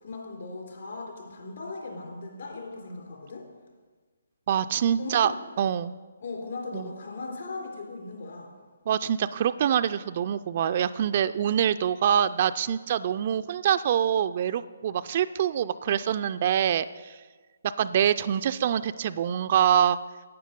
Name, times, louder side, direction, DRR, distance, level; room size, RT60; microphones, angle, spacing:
voice 1, 0.0-3.5 5.0-5.4 6.2-8.6, left 3 dB, 60° left, 0 dB, 3.5 m, -38 dB
voice 2, 4.5-5.3 5.6-5.9 6.7-6.9 8.9-17.2 17.6-20.0, right 9 dB, 40° right, 12 dB, 0.3 m, -25 dB
11.0 x 8.8 x 5.3 m, 1.4 s
figure-of-eight pair, 140°, 0 cm